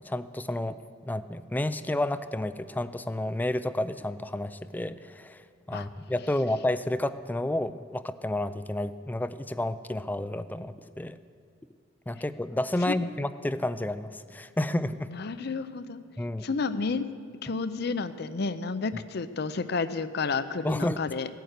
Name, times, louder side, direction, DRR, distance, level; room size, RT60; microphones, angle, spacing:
voice 1, 0.1-0.8 1.0-5.4 5.7-11.2 12.1-15.1 16.2-16.5 20.6-21.0, left 1 dB, 10° left, 13 dB, 0.4 m, -30 dB
voice 2, 15.1-16.0 16.4-17.1 17.4-21.3, left 4 dB, 60° left, 13 dB, 0.6 m, -31 dB
17.5 x 9.3 x 6.5 m, 2.3 s
head